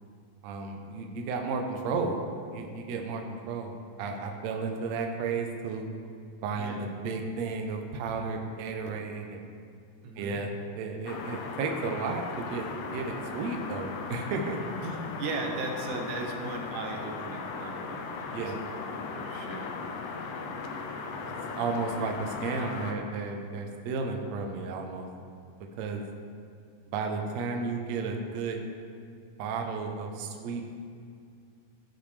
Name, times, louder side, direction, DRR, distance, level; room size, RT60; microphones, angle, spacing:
voice 1, 0.4-2.2 2.5-3.7 4.0-5.9 6.4-9.4 10.2-14.6 18.3-18.6 21.2-25.1 25.8-26.0 26.9-28.6 29.4-30.6, right 4 dB, 85° right, 3 dB, 1.5 m, -33 dB
voice 2, 6.5-6.8 10.0-10.4 14.8-18.5 19.1-19.7, right 3 dB, 70° right, 2 dB, 2.1 m, -37 dB
sound 1, 11.1-22.9, left 4 dB, 75° left, 2.1 m, -37 dB
15.0 x 6.1 x 3.3 m, 2.4 s
omnidirectional pair, 4.1 m